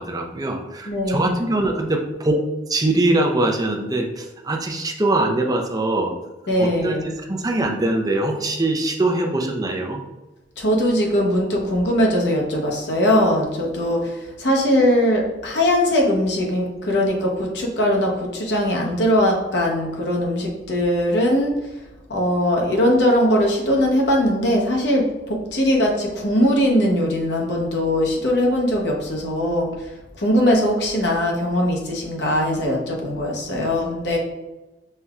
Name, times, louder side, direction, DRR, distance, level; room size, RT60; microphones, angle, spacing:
voice 1, 0.0-2.4 2.7-6.1 6.6-10.0, right 2 dB, 20° right, 1 dB, 0.5 m, -22 dB
voice 2, 0.9-1.3 6.5-7.0 10.6-21.6 22.1-29.7 30.1-34.2, equal, 70° left, -1 dB, 0.9 m, -20 dB
5.5 x 3.3 x 2.4 m, 1.1 s
head